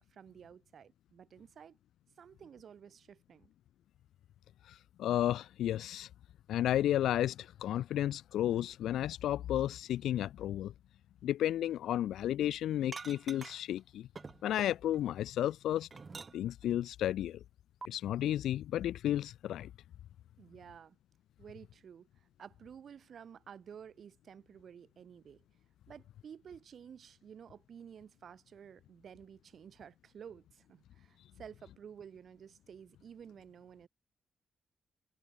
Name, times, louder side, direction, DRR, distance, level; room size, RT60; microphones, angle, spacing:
voice 1, 0.1-1.8 2.2-3.5 20.4-21.0 21.4-25.4 25.9-33.9, right 8 dB, 65° right, 4.0 m, -52 dB
voice 2, 4.7-6.1 6.5-10.7 11.2-14.1 14.4-15.9 16.3-17.4 17.9-19.7, left 12 dB, 85° left, 0.4 m, -33 dB
sound 1, 12.9-13.8 14.2-15.1 15.5-16.7 17.8-17.9, right 4 dB, 40° right, 0.6 m, -47 dB
cardioid pair, 75°, 0 cm